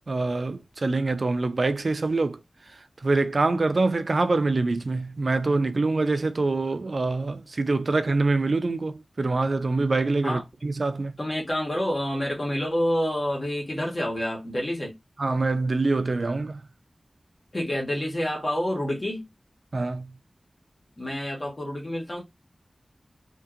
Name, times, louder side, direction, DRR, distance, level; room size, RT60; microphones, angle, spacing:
voice 1, 0.1-2.4 3.0-11.2 15.2-16.6 19.7-20.1, right 3 dB, 65° right, 0.3 m, -25 dB
voice 2, 11.2-14.9 17.5-19.3 21.0-22.2, equal, 40° left, 1.3 m, -28 dB
2.8 x 2.7 x 2.4 m
wide cardioid pair, 70°, 0 cm